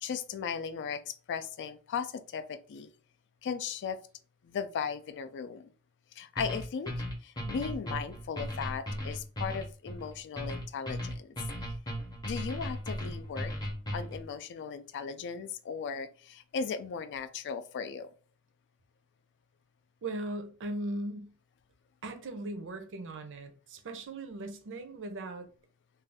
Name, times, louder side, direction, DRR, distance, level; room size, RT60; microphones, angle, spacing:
voice 1, 0.0-2.9 3.4-4.0 4.4-5.7 6.1-11.4 12.2-13.5 13.9-18.1, left 6 dB, 55° left, 0.3 m, -37 dB
sound 1, 6.4-14.3, equal, 20° left, 0.7 m, -37 dB
voice 2, 20.0-21.4 22.0-25.5, right 2 dB, 55° right, 0.5 m, -38 dB
2.6 x 2.3 x 3.3 m
head